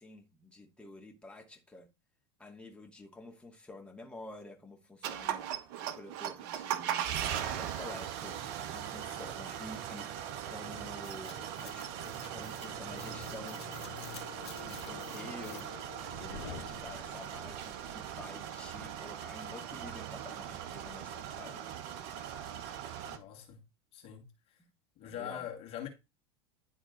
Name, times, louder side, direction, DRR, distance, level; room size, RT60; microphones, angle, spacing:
voice 1, 0.0-1.9 2.4-7.1 7.4-13.7 14.4-21.6 25.0-25.5, left 2 dB, 10° left, 2.0 m, -49 dB
sound 1, 5.0-23.2, right 10 dB, 55° right, 1.1 m, -39 dB
sound 2, 11.0-17.4, left 8 dB, 75° left, 1.2 m, -48 dB
voice 2, 23.1-23.6 23.9-24.3 25.0-25.9, left 10 dB, 45° left, 2.0 m, -42 dB
10.5 x 3.7 x 3.9 m
hypercardioid pair, 85°, 14 cm